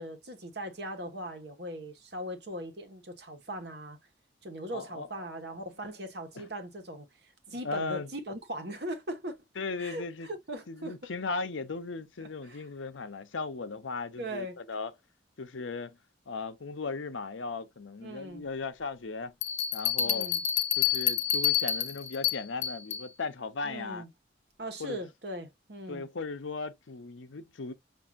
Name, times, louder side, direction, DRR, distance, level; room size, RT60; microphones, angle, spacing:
voice 1, 0.0-4.0 4.4-9.4 9.8-11.1 12.2-12.6 14.2-14.6 18.0-18.4 20.0-20.4 23.6-24.1 24.6-26.1, right 1 dB, 60° right, 1.1 m, -40 dB
voice 2, 4.7-5.4 6.4-6.5 7.5-8.1 9.6-10.3 10.7-14.9 15.4-16.0 16.3-19.3 19.7-20.3 20.8-24.0 24.8-25.0 25.9-27.7, left 4 dB, 85° left, 0.7 m, -37 dB
sound 1, 19.4-23.1, left 10 dB, 40° left, 0.4 m, -28 dB
6.0 x 2.6 x 2.5 m
head